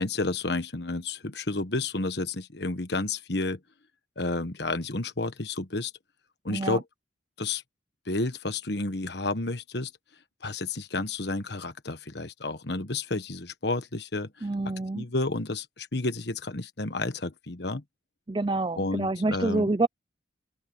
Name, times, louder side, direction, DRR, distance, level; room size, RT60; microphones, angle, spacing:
voice 1, 0.0-3.6 4.2-5.9 6.4-6.8 7.4-7.6 8.1-9.9 10.4-14.5 14.9-17.8 18.8-19.7, left 2 dB, 55° left, 1.4 m, -31 dB
voice 2, 6.5-6.8 14.4-15.1 18.3-19.9, right 2 dB, 25° right, 0.5 m, -27 dB
open air
head